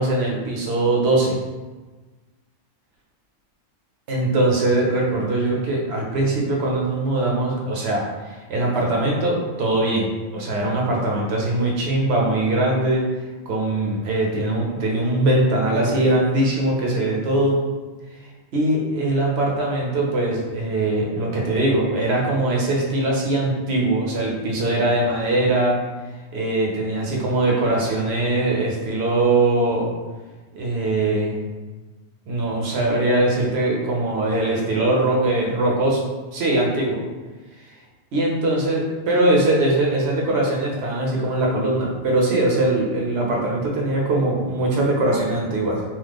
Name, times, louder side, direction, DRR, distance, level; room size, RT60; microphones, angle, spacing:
voice 1, 0.0-1.3 4.1-13.0 13.5-17.6 18.5-25.8 26.3-29.9 30.5-31.5 32.3-35.9 36.3-37.0 38.1-45.8, right 2 dB, 60° right, -2 dB, 0.8 m, -21 dB
3.0 x 2.1 x 3.4 m, 1.3 s
omnidirectional pair, 1.3 m